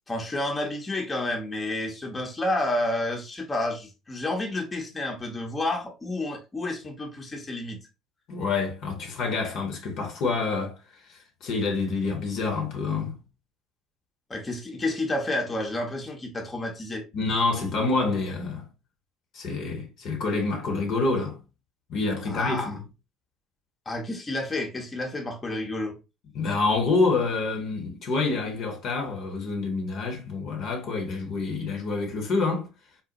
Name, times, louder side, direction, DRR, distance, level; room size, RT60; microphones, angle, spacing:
voice 1, 0.1-7.8 14.3-17.0 22.2-22.7 23.9-26.0, left 1 dB, 25° left, 0.8 m, -30 dB
voice 2, 8.3-10.8 11.1-13.2 17.1-18.7 19.3-21.4 21.9-22.8 26.3-32.7, left 3 dB, 55° left, 0.9 m, -27 dB
3.9 x 2.1 x 2.7 m
hypercardioid pair, 60°, 0 cm